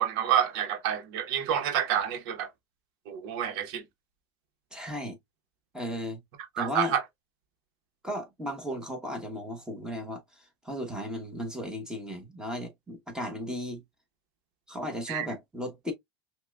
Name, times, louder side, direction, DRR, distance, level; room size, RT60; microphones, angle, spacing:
voice 1, 0.0-2.5 3.1-3.8 6.6-7.0 15.1-15.3, right 9 dB, 70° right, 0.9 m, -28 dB
voice 2, 4.7-5.2 5.7-6.2 6.6-6.9 8.0-13.8 14.7-15.9, left 1 dB, 5° right, 1.0 m, -35 dB
5.7 x 2.2 x 2.3 m
supercardioid pair, 125°, 12 cm